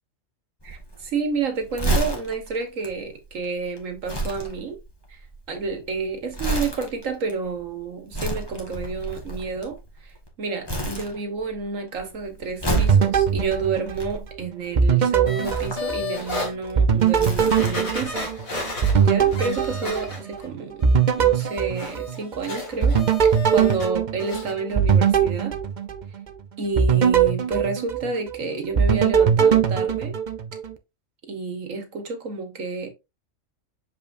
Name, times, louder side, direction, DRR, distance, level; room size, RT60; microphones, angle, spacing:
Crumpling crinkling, 0.6-10.3 10.7-11.6 11.9-14.6 15.3-18.0 18.3-18.4, right 1 dB, 20° left, 1.7 m, -31 dB
voice 1, 0.6-4.8 5.1-5.2 5.5-18.3 18.6-25.6 26.6-30.2 31.3-32.9, right 4 dB, 70° right, 1.7 m, -30 dB
sound 1, 12.8-14.4 14.8-16.4 16.8-20.4 20.8-22.4 22.8-26.3 26.8-28.4 28.8-30.7, right 7 dB, 45° right, 0.7 m, -21 dB
sound 2, 15.3-16.5 17.0-17.1 17.5-20.5 20.8-23.9 24.2-24.5 24.9-25.0, left 2 dB, 80° left, 2.7 m, -33 dB
6.9 x 5.3 x 2.6 m
omnidirectional pair, 1.4 m